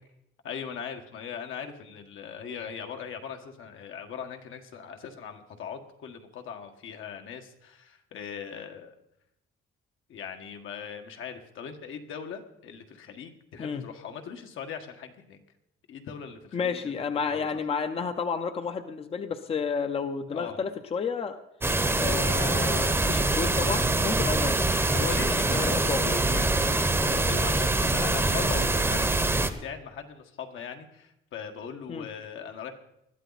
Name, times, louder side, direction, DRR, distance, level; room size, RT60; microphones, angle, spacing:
voice 1, 0.4-9.0 10.1-15.4 15.9-16.9 17.2-17.5 20.3-20.7 24.9-29.1 29.6-32.7, left 7 dB, 70° left, 4 dB, 1.7 m, -39 dB
voice 2, 16.5-21.4 21.9-24.6 25.5-26.2 31.9-32.1, left 5 dB, 30° left, 8 dB, 0.7 m, -31 dB
sound 1, 21.6-29.5, right 2 dB, 10° right, 0.9 m, -24 dB
20.5 x 13.0 x 4.1 m, 0.83 s
cardioid pair, 170°, 21 cm